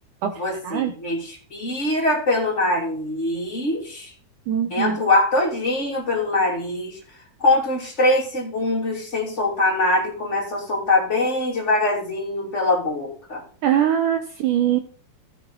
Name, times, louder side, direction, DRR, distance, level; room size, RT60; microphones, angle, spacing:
voice 1, 0.3-4.1 4.7-7.0 7.4-13.4, left 2 dB, 20° left, -2 dB, 2.7 m, -23 dB
voice 2, 4.5-5.0 13.6-14.8, right 10 dB, 75° right, 6 dB, 1.9 m, -21 dB
16.0 x 5.9 x 3.9 m, 0.41 s
omnidirectional pair, 4.5 m